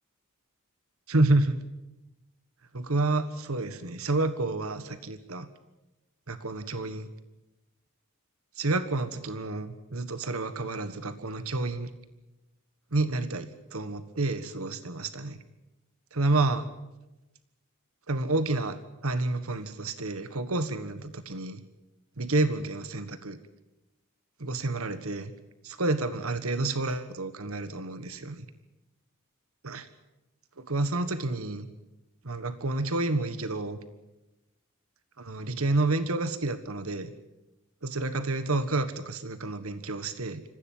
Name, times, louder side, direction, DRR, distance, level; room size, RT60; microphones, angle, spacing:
voice 1, 1.1-1.6 2.7-5.5 6.3-7.1 8.5-11.9 12.9-15.4 16.1-16.7 18.1-21.6 22.2-23.4 24.4-25.3 25.6-28.5 29.6-29.9 30.6-31.7 32.2-33.8 35.2-37.1 37.8-40.4, right 2 dB, 70° right, 11 dB, 1.4 m, -29 dB
26.5 x 15.0 x 9.2 m, 0.98 s
head